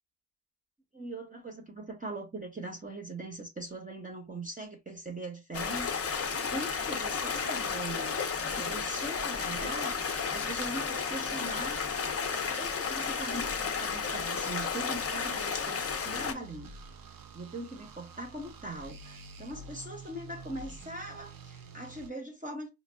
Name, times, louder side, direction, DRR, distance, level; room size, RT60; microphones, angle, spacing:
voice 1, 0.9-12.0 12.5-16.8 17.3-22.7, right 1 dB, 20° right, 0.7 m, -41 dB
Stream, 5.5-16.3, left 5 dB, 35° left, 0.6 m, -33 dB
sound 1, 16.0-22.1, right 4 dB, 50° right, 0.6 m, -48 dB
5.2 x 2.3 x 2.2 m
cardioid pair, 105°, 44 cm